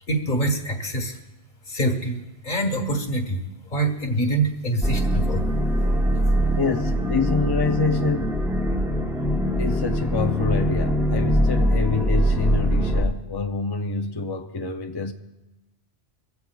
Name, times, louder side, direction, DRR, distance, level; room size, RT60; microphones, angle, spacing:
voice 1, 0.1-1.2 1.7-3.4 3.7-5.4, right 2 dB, 50° left, 1.6 m, -25 dB
sound 1, 4.8-13.0, equal, 5° right, 0.9 m, -22 dB
voice 2, 6.6-8.7 9.6-15.1, left 4 dB, 30° left, 0.5 m, -26 dB
22.5 x 15.5 x 2.3 m
omnidirectional pair, 1.1 m